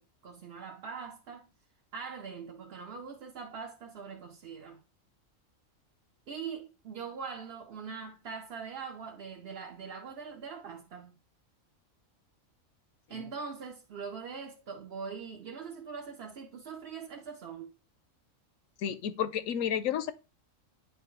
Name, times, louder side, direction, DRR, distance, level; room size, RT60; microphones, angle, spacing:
voice 1, 0.0-1.5 1.9-4.8 6.3-11.2 13.1-17.8, right 6 dB, 55° right, 0.8 m, -42 dB
voice 2, 18.8-20.1, left 9 dB, 85° left, 1.0 m, -31 dB
9.1 x 3.4 x 3.1 m
omnidirectional pair, 1.3 m